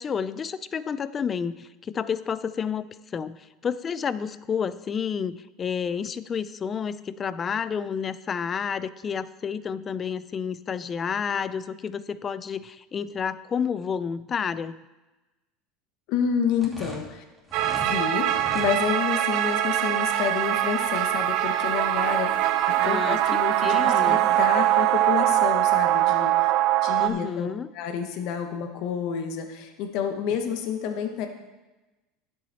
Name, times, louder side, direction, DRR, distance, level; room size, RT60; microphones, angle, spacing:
voice 1, 0.0-2.9 3.1-14.8 22.8-24.2 27.0-27.7, left 7 dB, 30° left, 16 dB, 0.4 m, -30 dB
voice 2, 16.1-17.2 17.8-22.3 22.7-26.5 26.8-27.5 27.7-31.3, left 7 dB, 65° left, 5 dB, 1.3 m, -29 dB
sound 1, 16.5-17.9 18.3-18.7, right 1 dB, 5° right, 2.6 m, -39 dB
sound 2, 17.5-27.1, right 13 dB, 60° right, 0.8 m, -23 dB
11.0 x 8.0 x 4.2 m, 1.1 s
supercardioid pair, 120°, 0 cm